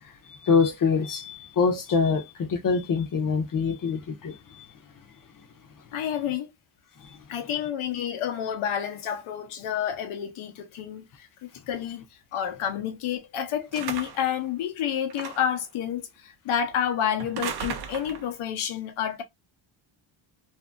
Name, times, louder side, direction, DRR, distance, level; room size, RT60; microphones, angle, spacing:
voice 1, 0.3-4.4, left 5 dB, 45° left, 0.7 m, -24 dB
voice 2, 5.9-6.5 7.3-12.0 12.3-19.2, left 9 dB, 90° left, 0.8 m, -29 dB
sound 1, 13.7-14.3 15.1-15.6 17.2-18.3, right 7 dB, 55° right, 0.5 m, -35 dB
2.7 x 2.6 x 2.4 m
cardioid pair, 140°, 48 cm